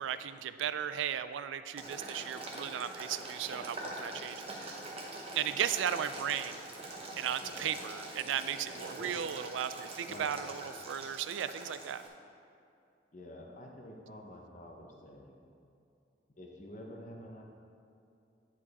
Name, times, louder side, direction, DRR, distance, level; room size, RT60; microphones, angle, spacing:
voice 1, 0.0-4.8 5.3-6.6 7.2-12.0, right 9 dB, 85° right, 12 dB, 0.3 m, -36 dB
Boiling, 1.8-12.1, right 2 dB, 30° right, 1.0 m, -44 dB
voice 2, 8.7-9.1 10.1-10.4 13.1-15.4 16.4-17.4, left 1 dB, 40° left, 0 dB, 0.8 m, -49 dB
10.0 x 4.9 x 4.1 m, 2.6 s
head